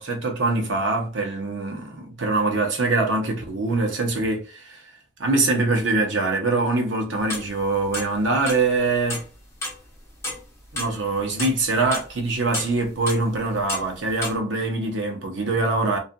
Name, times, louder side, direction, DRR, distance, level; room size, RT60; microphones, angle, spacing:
voice 1, 0.0-4.8 5.2-9.2 10.7-16.0, right 3 dB, 85° right, 0.8 m, -23 dB
sound 1, 7.2-8.2 8.5-9.8 10.2-12.2 12.5-14.4, left 2 dB, 15° left, 0.8 m, -31 dB
2.6 x 2.4 x 2.4 m
head